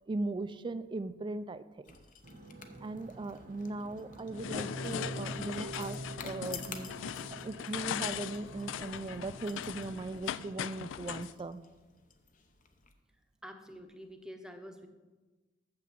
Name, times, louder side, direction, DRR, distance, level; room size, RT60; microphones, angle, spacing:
voice 1, 0.1-2.0 2.8-11.6, right 2 dB, 25° right, 13 dB, 0.3 m, -39 dB
sound 1, 1.8-12.9, left 7 dB, 45° left, 0.7 m, -53 dB
sound 2, 2.2-10.5, right 1 dB, 45° right, 0.8 m, -46 dB
sound 3, 4.3-11.3, left 10 dB, 85° left, 0.3 m, -40 dB
voice 2, 13.4-14.9, equal, 5° right, 5 dB, 0.8 m, -47 dB
7.0 x 5.8 x 7.3 m, 1.2 s
head